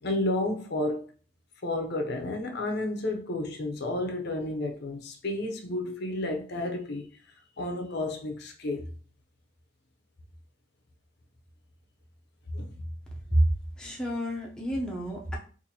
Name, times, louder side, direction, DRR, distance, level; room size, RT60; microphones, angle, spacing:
voice 1, 0.0-1.0 1.6-7.1 7.6-8.9 12.5-12.7, left 2 dB, 50° left, 0.6 m, -31 dB
voice 2, 13.8-15.4, right 1 dB, 5° left, 0.6 m, -28 dB
4.1 x 2.6 x 2.7 m
head